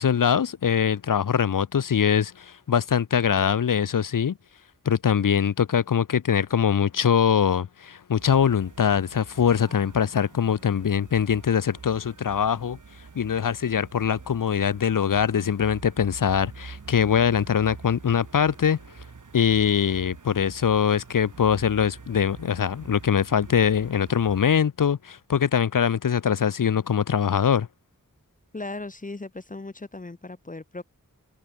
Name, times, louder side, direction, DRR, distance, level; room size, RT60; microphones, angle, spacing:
voice 1, 0.0-4.4 4.9-12.8 13.2-18.8 19.3-27.7, left 7 dB, 70° left, 0.6 m, -23 dB
sound 1, 8.2-24.6, right 4 dB, 60° right, 1.4 m, -46 dB
voice 2, 28.5-30.8, left 2 dB, 25° left, 0.7 m, -37 dB
open air
wide cardioid pair, 65°, 34 cm